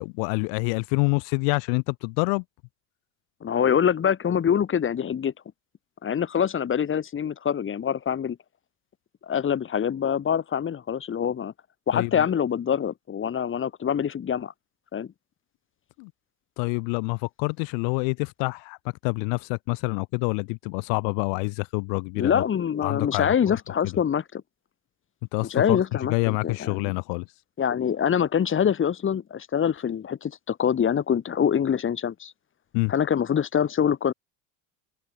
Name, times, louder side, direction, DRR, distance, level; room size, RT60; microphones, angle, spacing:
voice 1, 0.0-2.4 11.9-12.3 16.0-16.1 16.6-18.8 19.0-22.4 22.8-23.6 23.8-23.9 25.3-25.8 26.1-27.3 32.7-32.9, left 40 dB or more, 75° left, 4.7 m, -27 dB
voice 2, 3.4-5.3 6.0-8.4 9.2-11.5 11.9-14.5 14.9-15.1 22.1-24.4 25.5-26.9 27.6-32.3 32.9-34.1, left 8 dB, 25° left, 1.3 m, -25 dB
open air
supercardioid pair, 95°, 45 cm